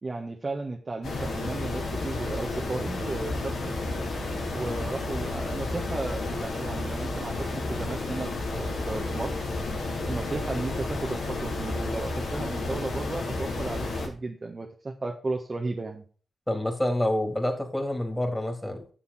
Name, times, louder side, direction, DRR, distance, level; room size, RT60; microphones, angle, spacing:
voice 1, 0.0-3.8 4.5-9.4 10.1-16.0, right 3 dB, 40° right, 1 dB, 1.5 m, -34 dB
sound 1, 1.0-14.1, left 2 dB, 85° left, 3.3 m, -31 dB
voice 2, 16.5-18.8, left 1 dB, 10° left, 3 dB, 3.5 m, -27 dB
10.5 x 7.0 x 4.3 m, 0.40 s
cardioid pair, 45°, 0 cm